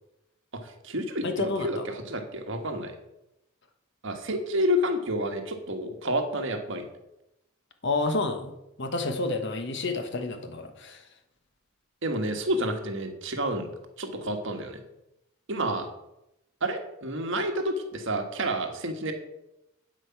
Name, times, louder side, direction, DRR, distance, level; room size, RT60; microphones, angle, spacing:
voice 1, 0.5-2.9 4.0-6.8 12.0-13.7 14.0-14.8 15.5-15.9 16.6-19.1, equal, 60° right, 5 dB, 1.5 m, -29 dB
voice 2, 1.2-1.8 7.8-8.5 8.8-11.0, left 3 dB, 55° left, 7 dB, 1.2 m, -29 dB
8.7 x 8.0 x 5.8 m, 0.89 s
head